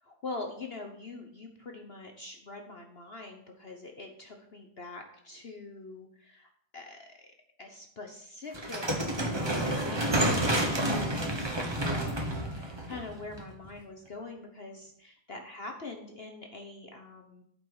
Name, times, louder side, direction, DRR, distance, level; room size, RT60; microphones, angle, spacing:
voice 1, 0.0-7.3 7.6-17.4, left 3 dB, 60° left, 3 dB, 0.6 m, -44 dB
sound 1, 8.5-13.7, right 1 dB, 20° right, 0.6 m, -29 dB
11.5 x 5.5 x 4.8 m, 0.67 s
omnidirectional pair, 2.3 m